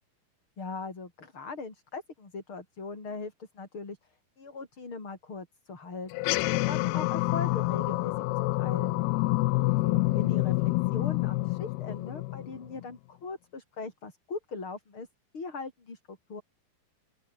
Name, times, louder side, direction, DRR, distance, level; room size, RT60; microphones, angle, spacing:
voice 1, 0.6-6.2 6.5-8.2 8.6-9.0 9.6-15.1 15.3-16.4, left 4 dB, 30° left, 5.6 m, -40 dB
sound 1, 6.1-12.8, left 21 dB, 85° left, 2.6 m, -27 dB
open air
omnidirectional pair, 4.6 m